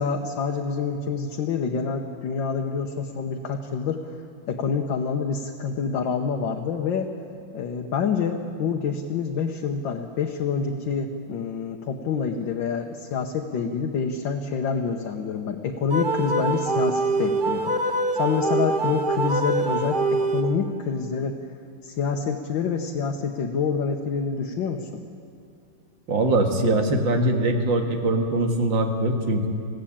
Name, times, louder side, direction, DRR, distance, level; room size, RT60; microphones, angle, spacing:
voice 1, 0.0-4.1 4.5-7.1 7.5-21.4 21.8-24.9, left 5 dB, 75° left, 2 dB, 1.7 m, -27 dB
sound 1, 15.9-20.8, right 2 dB, 35° right, 0.9 m, -24 dB
voice 2, 26.1-29.5, right 2 dB, 75° right, 4 dB, 2.5 m, -22 dB
21.0 x 15.5 x 8.7 m, 2.5 s
omnidirectional pair, 2.1 m